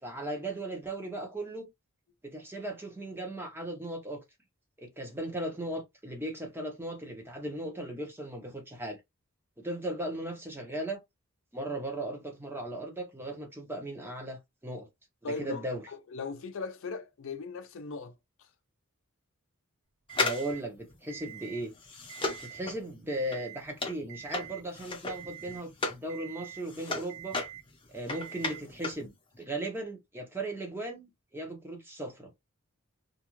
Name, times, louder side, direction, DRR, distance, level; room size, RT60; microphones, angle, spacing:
voice 1, 0.0-1.7 2.2-4.2 4.8-9.0 9.6-11.0 11.5-14.9 15.2-15.8 20.2-21.7 22.2-27.4 27.9-32.3, right 1 dB, 10° right, 0.7 m, -37 dB
voice 2, 15.2-18.1 18.4-18.5, left 4 dB, 60° left, 0.4 m, -39 dB
sound 1, 20.1-26.1 26.4-29.1 29.3-29.4, left 3 dB, 25° left, 0.7 m, -35 dB
Alarm, 20.1-20.6 21.1-21.6 22.0-22.6 23.1-23.6 24.1-24.6 25.1-25.6 26.1-26.6 27.1-27.6 28.1-28.6, right 12 dB, 75° right, 0.5 m, -46 dB
2.5 x 2.3 x 3.0 m
head